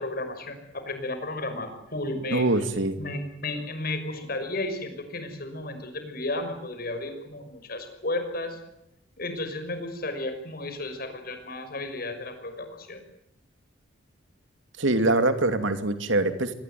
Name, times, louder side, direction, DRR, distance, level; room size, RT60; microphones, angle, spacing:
voice 1, 0.0-2.5 3.0-8.6 9.2-13.0, left 2 dB, 50° left, 8 dB, 5.9 m, -33 dB
voice 2, 2.3-3.0 14.8-16.5, right 2 dB, 75° right, 9 dB, 2.5 m, -23 dB
25.5 x 20.0 x 9.3 m, 0.82 s
head